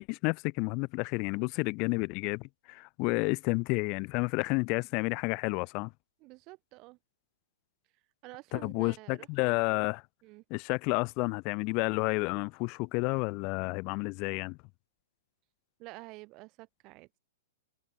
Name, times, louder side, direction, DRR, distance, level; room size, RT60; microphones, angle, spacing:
voice 1, 0.0-5.9 8.5-10.0 10.5-14.6, left 30 dB, 40° left, 0.4 m, -31 dB
voice 2, 6.2-7.0 8.2-9.3 10.2-10.4 15.8-17.2, right 23 dB, 40° right, 4.8 m, -49 dB
hypercardioid pair, 120°, 0 cm